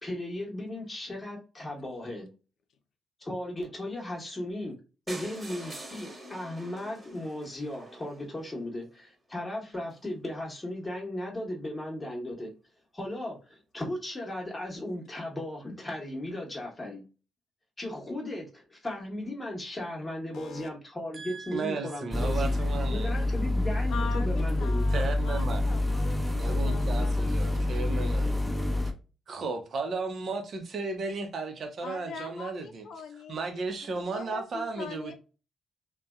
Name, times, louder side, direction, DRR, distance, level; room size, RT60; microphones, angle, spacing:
voice 1, 0.0-2.3 3.2-4.7 5.1-12.5 12.9-17.0 17.8-22.5 22.9-24.8, left 1 dB, 20° left, 1.0 m, -36 dB
sound 1, 5.1-9.0 9.6-9.7 9.9-10.1 10.3-10.4 10.6-10.7, right 1 dB, 30° right, 1.3 m, -45 dB
voice 2, 20.3-20.7 23.9-27.4 31.8-35.1, left 5 dB, 70° left, 0.4 m, -42 dB
voice 3, 21.1-23.2 24.9-25.8 26.4-28.4 29.3-32.9 33.3-35.1, right 4 dB, 60° right, 0.7 m, -35 dB
sound 2, 22.1-28.9, left 1 dB, ahead, 0.8 m, -27 dB
2.6 x 2.2 x 2.2 m
supercardioid pair, 55°, 0 cm